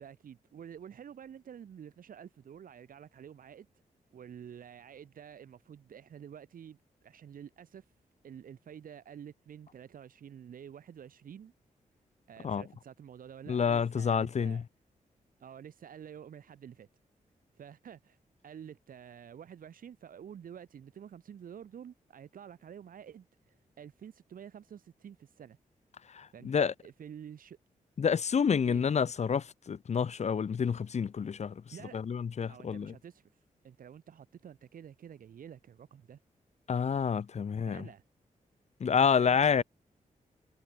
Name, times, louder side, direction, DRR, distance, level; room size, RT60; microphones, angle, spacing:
voice 1, 0.0-3.7 4.1-7.9 8.2-11.5 12.3-14.6 15.4-16.9 17.5-18.2 18.4-25.6 26.3-27.6 28.6-28.8 31.7-32.0 32.5-33.3 33.6-36.2 37.7-38.0 38.8-39.6, right 8 dB, 90° right, 5.2 m, -49 dB
voice 2, 13.5-14.6 26.1-26.7 28.0-31.6 31.9-32.9 36.7-37.9 38.8-39.6, left 6 dB, 55° left, 2.3 m, -28 dB
wide cardioid pair, 155°, 14 cm